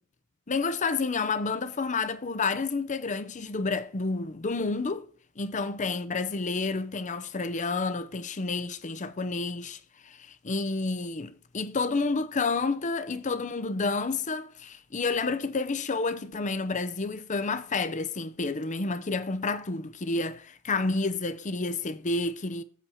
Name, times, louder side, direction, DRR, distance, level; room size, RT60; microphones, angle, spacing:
voice 1, 0.5-5.1 5.4-22.6, left 3 dB, 35° left, 0.7 m, -30 dB
8.2 x 4.7 x 5.4 m
head